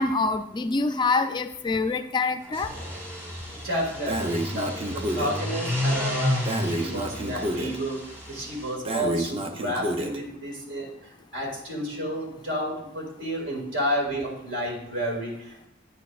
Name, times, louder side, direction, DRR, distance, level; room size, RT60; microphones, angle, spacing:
voice 1, 0.0-2.7, left 3 dB, 25° left, 9 dB, 0.3 m, -25 dB
sound 1, 2.5-8.7, left 1 dB, 15° right, 1.2 m, -31 dB
voice 2, 3.6-6.4 6.6-8.0 8.3-10.9 11.3-15.7, equal, 75° right, -1 dB, 2.2 m, -31 dB
Breathing, 4.1-5.4 6.4-7.8 8.8-10.2, right 1 dB, 30° right, 0.6 m, -29 dB
8.8 x 8.1 x 2.4 m, 0.80 s
head